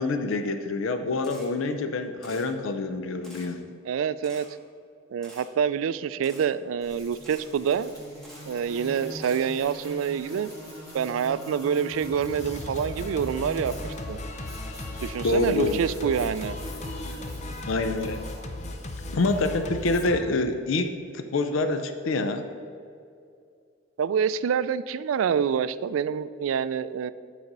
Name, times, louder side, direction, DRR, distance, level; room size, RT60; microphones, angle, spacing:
voice 1, 0.0-3.6 15.2-15.9 17.7-18.2 19.1-22.5, left 2 dB, 85° left, 8 dB, 0.5 m, -26 dB
Camera, 1.2-1.5 2.2-2.5 3.2-3.5 4.2-4.5 5.2-5.5 6.2-6.5 7.2-7.5 8.2-8.5 9.2-9.4, right 1 dB, 5° left, 1.4 m, -48 dB
voice 2, 3.9-4.5 5.1-7.9 8.5-10.5 10.9-13.7 14.1-14.2 15.0-16.6 24.0-27.1, right 7 dB, 90° right, 15 dB, 0.3 m, -26 dB
sound 1, 6.8-19.5, equal, 20° left, 2.0 m, -43 dB
Singing, 11.9-20.2, left 2 dB, 35° left, 0.6 m, -37 dB
10.5 x 4.1 x 5.3 m, 2.4 s
head